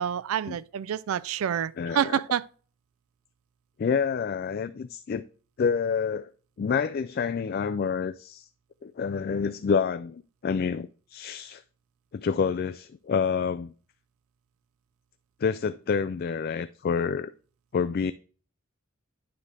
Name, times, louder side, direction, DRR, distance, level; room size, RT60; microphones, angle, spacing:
voice 1, 0.0-2.5, right 9 dB, 80° right, 0.3 m, -28 dB
voice 2, 1.8-2.2 3.8-5.2 5.6-6.3 6.6-8.5 8.8-11.6 12.1-13.7 15.4-17.3 17.7-18.1, left 6 dB, 45° left, 0.3 m, -28 dB
9.7 x 3.4 x 6.3 m
head